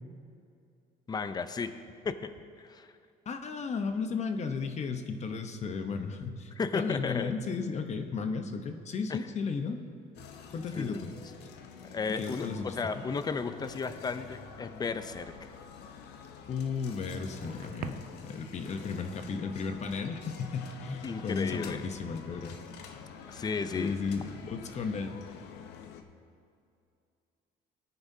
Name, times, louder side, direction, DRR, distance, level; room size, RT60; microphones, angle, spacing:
voice 1, 1.1-1.7 2.0-2.3 2.6-2.9 6.6-7.3 9.1-9.2 10.7-11.0 11.9-15.3 21.0-21.8 23.3-23.9, left 5 dB, 25° left, 10 dB, 0.6 m, -34 dB
voice 2, 3.3-9.8 10.5-11.1 12.2-13.0 16.5-22.6 23.7-25.1, left 5 dB, 40° left, 7 dB, 0.9 m, -34 dB
sound 1, 10.1-26.0, left 7 dB, 80° left, 0.8 m, -48 dB
sound 2, 15.9-24.1, right 10 dB, 60° right, 0.6 m, -52 dB
19.0 x 9.5 x 2.8 m, 2.5 s
cardioid pair, 110°, 17 cm